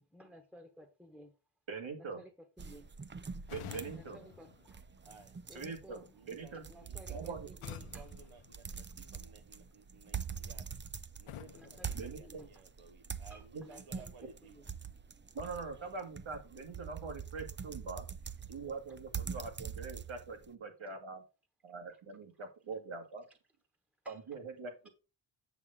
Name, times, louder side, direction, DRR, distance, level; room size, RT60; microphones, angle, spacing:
voice 1, 0.0-1.3 2.0-2.3 2.6-2.9 3.9-4.8 5.5-6.3 6.7-8.1 11.5-12.5 13.3-14.7 21.9-22.0 23.3-23.4 24.0-24.4, equal, 5° right, 1.1 m, -56 dB
voice 2, 1.7-2.2 3.5-4.2 5.5-6.6 7.1-7.5 11.9-12.4 13.5-13.6 15.3-18.1 18.5-21.2 21.6-23.3 24.1-24.7, right 4 dB, 70° right, 2.1 m, -43 dB
sound 1, 2.6-20.5, right 6 dB, 25° right, 0.4 m, -45 dB
sound 2, 3.5-5.5 7.6-9.3 11.3-12.9, left 10 dB, 85° left, 0.7 m, -51 dB
voice 3, 5.0-5.3 6.1-7.3 7.7-10.7 11.2-14.6 15.7-15.8, right 5 dB, 85° right, 1.1 m, -58 dB
8.2 x 6.9 x 3.7 m
wide cardioid pair, 140°, 49 cm